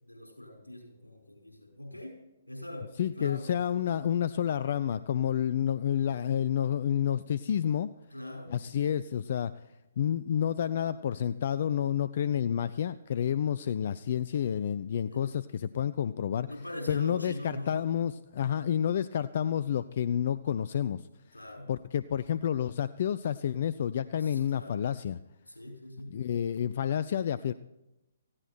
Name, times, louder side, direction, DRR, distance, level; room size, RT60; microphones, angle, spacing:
voice 1, 0.0-2.2 2.5-3.5 8.1-8.8 15.1-15.2 16.4-17.7 21.3-21.7 24.2-24.9 25.5-26.1, left 1 dB, 85° left, 0 dB, 5.8 m, -42 dB
voice 2, 3.0-7.9 8.5-9.5 10.0-16.5 16.9-21.1 21.7-25.2 26.1-27.5, left 9 dB, 45° left, 16 dB, 0.5 m, -29 dB
18.5 x 15.5 x 4.5 m, 0.96 s
figure-of-eight pair, 130°, 0 cm